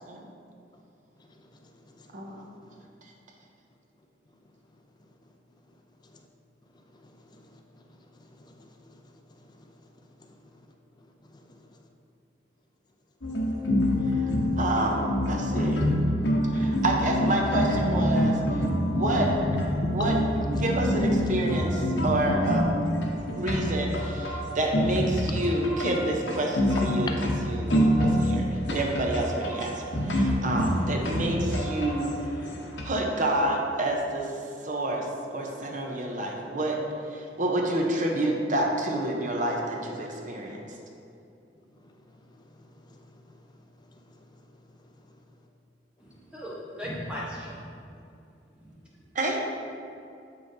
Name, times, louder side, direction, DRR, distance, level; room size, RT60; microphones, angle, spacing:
voice 1, 2.1-2.4 14.1-14.3 14.6-15.9 16.5-18.7 18.9-19.3 19.9-20.2 20.5-22.7 23.3-27.1 27.4-32.1 32.8-34.4 34.6-35.1 35.3-36.8 37.1-40.6 49.1-49.4, right 1 dB, 45° right, 0 dB, 0.7 m, -28 dB
voice 2, 7.0-7.6 8.4-8.9 10.2-10.3 11.2-11.6 35.9-36.0 41.8-41.9 42.6-42.9 43.9-44.2, left 1 dB, 25° left, 3 dB, 0.5 m, -55 dB
sound 1, 13.2-32.8, equal, 80° left, 0.9 m, -26 dB
voice 3, 46.0-47.6 48.6-49.0, equal, 5° right, -6 dB, 1.0 m, -38 dB
7.6 x 5.5 x 2.7 m, 2.6 s
head